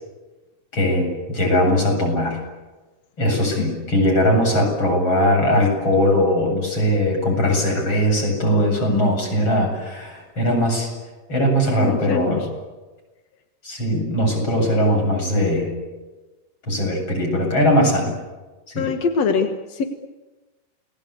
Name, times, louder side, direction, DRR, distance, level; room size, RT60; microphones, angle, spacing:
voice 1, 0.7-2.4 3.2-10.9 11.3-12.4 13.6-15.7 16.7-18.1 18.7-18.9, equal, 25° left, 1 dB, 8.3 m, -20 dB
voice 2, 11.8-12.4 18.8-19.8, left 5 dB, 60° left, 5 dB, 1.7 m, -23 dB
29.5 x 20.0 x 8.5 m, 1.2 s
omnidirectional pair, 5.1 m